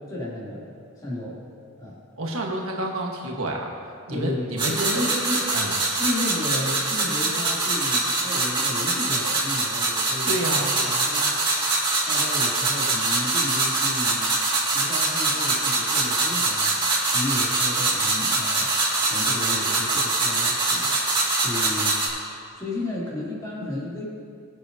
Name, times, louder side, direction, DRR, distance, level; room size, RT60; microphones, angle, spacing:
voice 1, 0.1-1.4 1.8-2.0 4.1-5.5 5.9-10.6 11.0-11.4 12.1-14.4 14.7-16.7 17.1-18.7 19.0-21.0 21.4-22.3 22.5-24.0, left 1 dB, 20° left, -7 dB, 3.0 m, -33 dB
voice 2, 2.2-3.7 4.1-5.0 5.5-5.7 10.2-11.1, right 1 dB, 80° right, 0 dB, 1.4 m, -29 dB
sound 1, 4.6-22.1, right 2 dB, 25° right, 2.2 m, -24 dB
21.5 x 8.1 x 2.8 m, 2.3 s
head